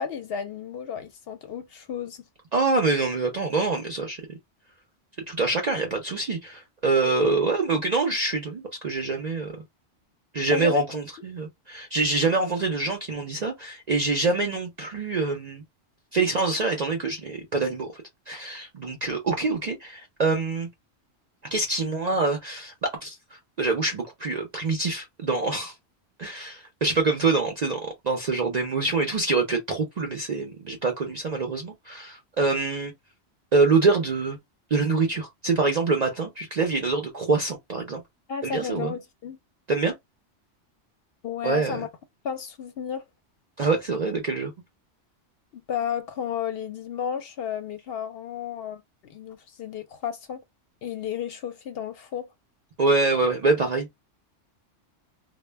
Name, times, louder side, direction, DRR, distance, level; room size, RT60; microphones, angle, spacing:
voice 1, 0.0-2.2 10.5-10.8 38.3-39.4 41.2-41.9 42.2-43.0 45.5-50.4 50.8-52.3, left 8 dB, 65° left, 0.7 m, -33 dB
voice 2, 2.5-4.4 5.3-9.6 10.3-15.6 16.1-20.7 21.4-23.1 23.6-25.8 26.2-32.9 33.5-34.4 34.7-38.0 38.4-38.9 39.7-39.9 41.4-41.8 43.6-44.5 52.8-54.0, right 3 dB, 55° right, 0.5 m, -25 dB
2.1 x 2.1 x 3.2 m
omnidirectional pair, 1.2 m